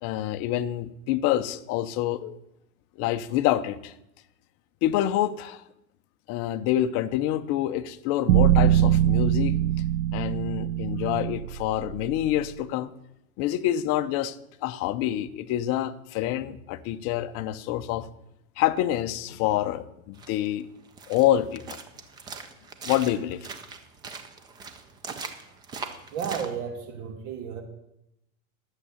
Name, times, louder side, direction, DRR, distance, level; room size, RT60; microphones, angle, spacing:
voice 1, 0.0-2.4 3.0-3.9 4.8-5.6 6.3-9.6 10.1-12.9 13.4-14.4 14.6-18.1 18.6-20.7 21.1-21.8 22.8-23.5, left 13 dB, 35° left, 10 dB, 0.6 m, -27 dB
sound 1, 8.3-12.5, right 12 dB, 85° right, 0.6 m, -23 dB
sound 2, 20.1-26.5, right 5 dB, 10° right, 0.3 m, -41 dB
voice 2, 26.1-27.6, right 7 dB, 70° right, 3 dB, 2.7 m, -33 dB
11.5 x 7.5 x 7.0 m, 0.82 s
supercardioid pair, 145°, 43 cm